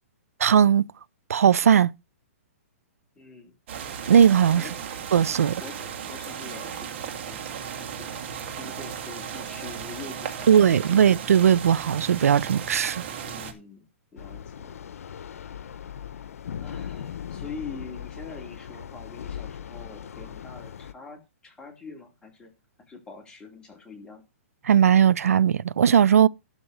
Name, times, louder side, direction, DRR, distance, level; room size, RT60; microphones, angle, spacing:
voice 1, 0.4-0.9 1.3-1.9 4.1-4.6 5.1-5.5 10.5-13.0 24.7-26.3, right 8 dB, 80° right, 0.5 m, -18 dB
voice 2, 3.2-3.6 4.6-5.0 5.6-8.1 8.6-11.0 13.2-13.9 14.1-14.9 16.6-22.5 22.8-24.2, left 4 dB, 10° left, 2.8 m, -44 dB
sound 1, 3.7-13.5, right 8 dB, 50° right, 2.7 m, -36 dB
sound 2, 14.2-20.9, left 8 dB, 75° left, 0.9 m, -39 dB
12.5 x 4.4 x 7.9 m
hypercardioid pair, 150°, 8 cm